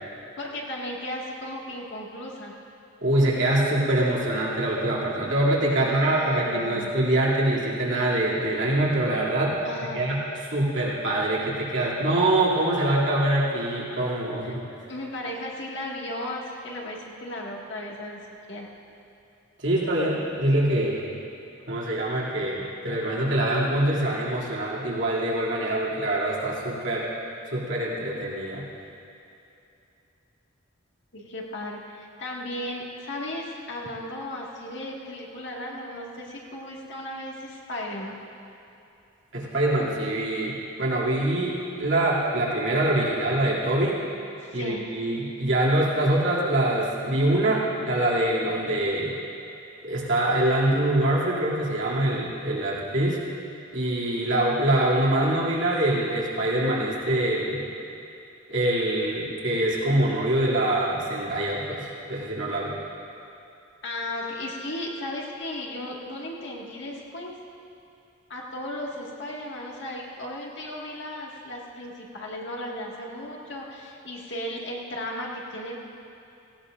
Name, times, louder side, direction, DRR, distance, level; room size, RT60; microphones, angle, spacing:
voice 1, 0.4-2.5 5.8-6.9 9.6-10.0 14.4-14.5 14.9-18.2 18.5-18.7 31.1-38.2 43.2-43.3 44.4-44.9 63.8-67.3 68.3-75.8, left 1 dB, 60° left, -3 dB, 2.0 m, -35 dB
voice 2, 3.0-9.6 9.9-14.6 19.6-21.0 21.7-27.1 27.5-28.6 39.3-44.0 44.5-49.1 49.8-53.2 53.7-57.6 58.5-62.7, right 1 dB, 65° right, -6 dB, 2.8 m, -24 dB
17.5 x 17.5 x 2.6 m, 2.8 s
head